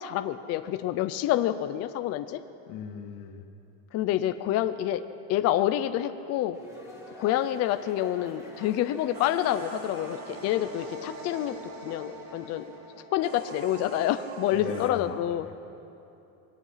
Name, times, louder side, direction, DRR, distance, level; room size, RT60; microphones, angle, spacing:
voice 1, 0.0-2.4 3.9-5.0 5.3-6.6 7.2-11.6 11.8-12.6 13.1-15.5, left 12 dB, 35° left, 9 dB, 0.6 m, -27 dB
voice 2, 2.7-3.4 14.5-15.5, left 7 dB, 90° left, 3 dB, 2.5 m, -38 dB
sound 1, 6.5-12.8, equal, 5° right, 3.7 m, -48 dB
sound 2, 9.1-14.9, right 3 dB, 45° right, 2.7 m, -42 dB
26.5 x 20.5 x 5.7 m, 2.7 s
cardioid pair, 175°, 47 cm